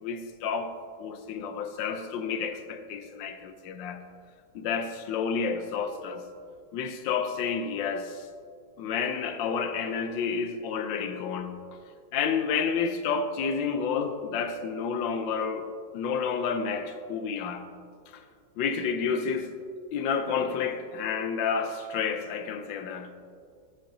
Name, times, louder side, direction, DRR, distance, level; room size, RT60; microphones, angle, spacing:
voice 1, 0.0-0.7 1.0-4.0 4.5-6.2 6.7-8.2 8.8-11.6 12.1-15.7 15.9-17.7 18.1-18.2 18.6-19.6 19.9-23.1, left 6 dB, 85° left, 1.4 m, -30 dB
13.5 x 7.6 x 2.7 m
omnidirectional pair, 2.0 m